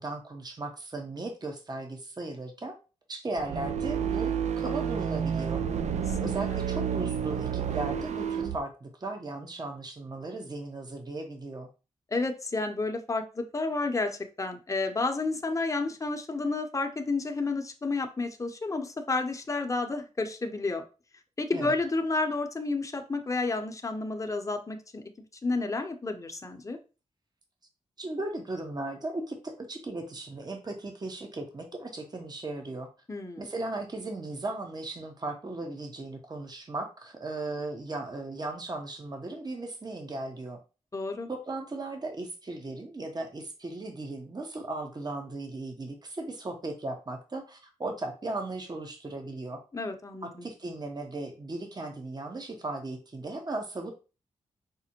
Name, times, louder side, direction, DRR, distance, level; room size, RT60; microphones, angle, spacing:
voice 1, 0.0-2.8 3.1-5.6 6.2-11.7 21.5-21.8 28.0-32.9 33.4-40.6 41.3-49.6 50.2-53.9, right 2 dB, 30° right, 4 dB, 0.9 m, -37 dB
sound 1, 3.3-8.6, right 8 dB, 65° right, 0.4 m, -30 dB
voice 2, 6.1-6.6 12.1-20.8 21.4-25.0 25.4-26.8 33.1-33.5 40.9-41.3 49.7-50.5, left 3 dB, 25° left, 5 dB, 0.7 m, -31 dB
5.0 x 2.1 x 2.9 m, 0.32 s
cardioid pair, 50°, 13 cm